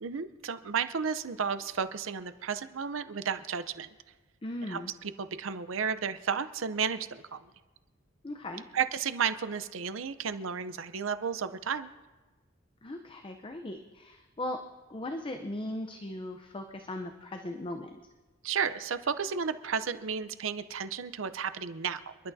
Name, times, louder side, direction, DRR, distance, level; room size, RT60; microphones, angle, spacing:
voice 1, 0.0-3.9 4.7-4.8 5.2-7.4 8.7-11.9 18.4-22.0, right 6 dB, 80° right, 12 dB, 0.6 m, -32 dB
voice 2, 4.4-4.9 8.2-8.7 12.8-14.6 14.9-17.9, left 1 dB, 25° left, 5 dB, 0.6 m, -38 dB
29.0 x 11.5 x 2.7 m, 1.2 s
head